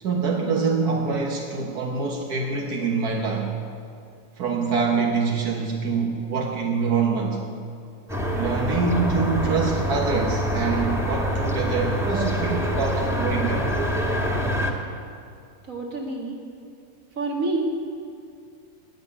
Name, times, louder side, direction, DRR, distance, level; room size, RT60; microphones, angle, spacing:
voice 1, 0.0-3.5 4.4-7.4 8.3-13.7, right 4 dB, 90° right, 0 dB, 1.8 m, -25 dB
sound 1, 8.1-14.7, equal, ahead, 1.4 m, -25 dB
voice 2, 15.7-16.4 17.2-17.8, right 2 dB, 60° right, 0 dB, 2.5 m, -27 dB
19.0 x 6.6 x 9.8 m, 2.3 s
omnidirectional pair, 1.6 m